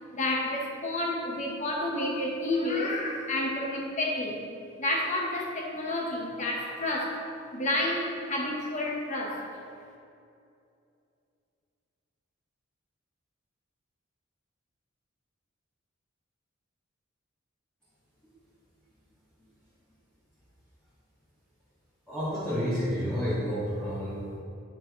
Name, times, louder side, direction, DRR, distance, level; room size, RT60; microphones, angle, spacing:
voice 1, 0.1-4.4 4.8-7.2 7.5-9.4, left 1 dB, 35° left, -1 dB, 1.1 m, -30 dB
voice 2, 22.1-24.4, equal, 5° left, -13 dB, 1.7 m, -30 dB
8.7 x 6.0 x 3.1 m, 2.5 s
head